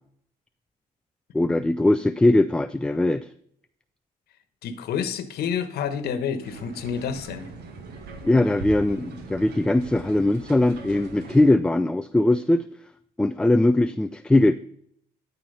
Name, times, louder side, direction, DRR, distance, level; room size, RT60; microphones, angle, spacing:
voice 1, 1.3-3.3 8.2-12.7 13.2-14.6, left 1 dB, 5° left, 12 dB, 0.3 m, -20 dB
voice 2, 4.6-7.5, left 7 dB, 70° left, 11 dB, 1.2 m, -29 dB
sound 1, 6.4-11.5, right 3 dB, 75° right, 2.0 m, -40 dB
12.5 x 4.5 x 5.5 m, 0.67 s
cardioid pair, 110°, 17 cm